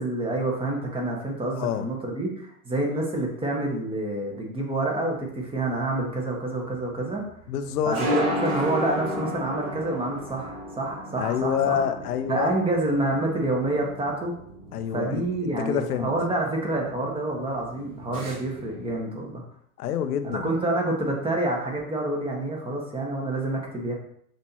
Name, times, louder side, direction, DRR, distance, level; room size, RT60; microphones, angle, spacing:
voice 1, 0.0-7.2 7.8-11.8 12.3-14.3 14.9-19.4 20.2-23.9, right 2 dB, 10° right, -1 dB, 1.3 m, -27 dB
voice 2, 1.5-1.8 7.5-8.0 11.2-12.6 14.7-16.1 19.8-20.5, left 9 dB, 80° left, 9 dB, 0.6 m, -27 dB
sound 1, 5.1-19.0, equal, 45° right, 1.8 m, -35 dB
6.1 x 2.9 x 2.9 m, 0.68 s
hypercardioid pair, 95°, 45 cm